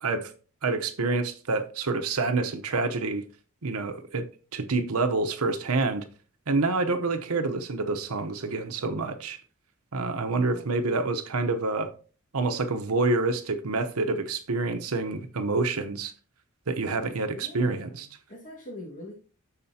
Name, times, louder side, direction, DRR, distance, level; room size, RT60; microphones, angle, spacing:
voice 1, 0.0-0.3 0.6-3.2 3.6-4.3 4.5-6.1 6.5-9.4 9.9-11.9 12.3-16.1 16.7-18.1, right 3 dB, 90° right, 0.9 m, -27 dB
voice 2, 10.1-11.0 17.3-19.1, left 1 dB, 35° left, 1.8 m, -44 dB
12.5 x 4.3 x 2.8 m
head